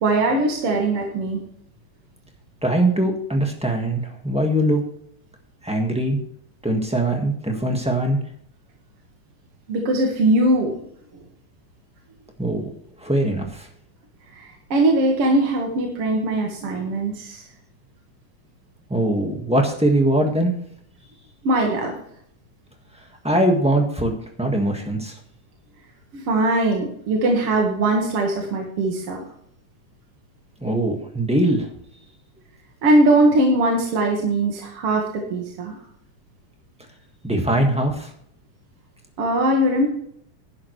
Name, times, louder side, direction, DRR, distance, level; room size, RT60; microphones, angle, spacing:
voice 1, 0.0-1.4 9.7-10.7 14.4-17.4 21.4-21.9 26.1-29.2 32.8-35.8 39.2-39.9, right 1 dB, 55° right, 1 dB, 2.5 m, -20 dB
voice 2, 2.6-4.8 5.6-6.2 6.6-8.2 12.4-12.6 13.0-13.6 18.9-20.5 23.2-25.1 30.6-31.7 37.2-38.1, right 1 dB, 5° right, 2 dB, 0.4 m, -21 dB
11.5 x 11.0 x 3.2 m, 0.67 s
omnidirectional pair, 3.4 m